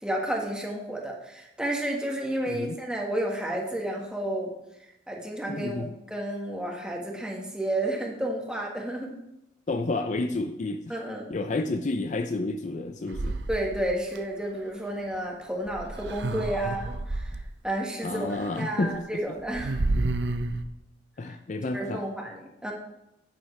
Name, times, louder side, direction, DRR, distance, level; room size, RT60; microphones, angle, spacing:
voice 1, 0.0-4.5 5.1-9.1 10.9-11.3 13.5-17.4 17.6-19.8 21.7-22.7, right 1 dB, 5° right, -1 dB, 1.5 m, -31 dB
voice 2, 5.5-5.9 9.7-11.0 11.3-13.4 18.0-19.4 21.2-22.0, left 2 dB, 40° left, 7 dB, 0.4 m, -30 dB
sound 1, 13.1-14.2 15.7-17.5 18.3-18.6 18.9-19.0 19.4-20.6, right 2 dB, 70° right, 0.6 m, -30 dB
9.5 x 9.3 x 3.3 m, 0.87 s
head